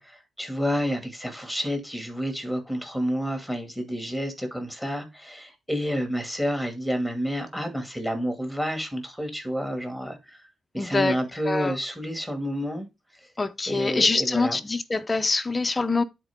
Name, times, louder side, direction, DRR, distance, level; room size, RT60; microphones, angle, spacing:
voice 1, 0.0-10.5 10.7-12.9 13.2-13.3 13.7-14.6, equal, 5° right, 2.4 m, -29 dB
voice 2, 10.8-11.2 11.4-11.8 13.4-16.0, left 3 dB, 25° left, 0.7 m, -24 dB
10.0 x 4.5 x 3.6 m
cardioid pair, 95°, 0 cm